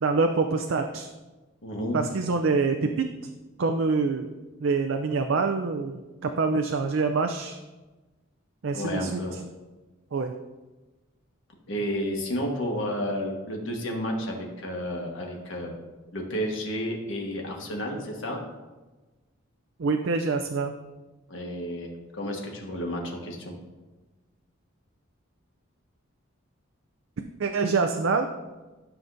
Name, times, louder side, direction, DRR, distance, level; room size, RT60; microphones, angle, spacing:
voice 1, 0.0-1.1 1.9-3.1 3.6-4.3 4.6-7.6 8.6-9.2 10.1-10.3 19.8-20.7 27.4-28.3, right 4 dB, 70° right, 5 dB, 0.5 m, -25 dB
voice 2, 1.6-2.0 8.7-9.3 11.7-15.7 16.1-18.4 21.3-23.5, equal, 70° left, 0 dB, 1.4 m, -31 dB
12.5 x 5.9 x 2.6 m, 1.2 s
head